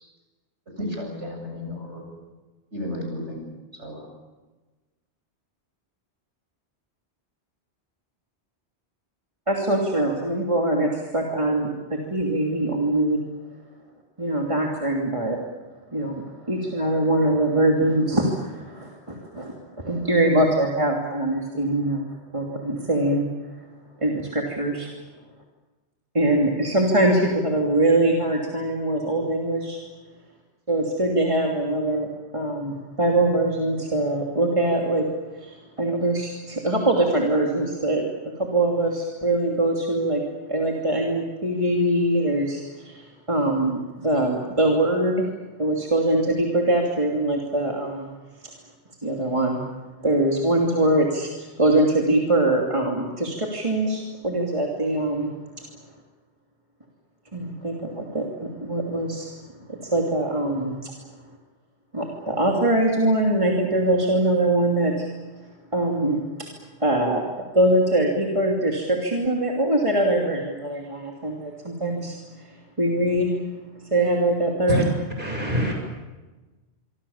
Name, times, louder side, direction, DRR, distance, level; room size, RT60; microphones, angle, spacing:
voice 1, 0.8-2.0 2.7-3.4 3.8-4.1, left 1 dB, 80° right, 2 dB, 8.2 m, -33 dB
voice 2, 9.5-13.2 14.2-15.4 15.9-22.0 22.3-23.2 24.0-24.9 26.1-29.8 30.7-35.1 35.4-38.0 38.4-40.2 40.5-45.3 45.6-48.1 49.0-49.6 50.0-55.3 55.6-55.7 57.3-59.3 59.7-60.9 61.9-65.1 65.7-66.5 66.8-67.2 67.5-72.5 72.8-73.4 73.9-74.8, right 1 dB, 25° right, -1 dB, 3.0 m, -23 dB
voice 3, 75.2-75.7, equal, 50° right, 1 dB, 7.7 m, -24 dB
26.0 x 25.0 x 7.3 m, 1.2 s
omnidirectional pair, 1.1 m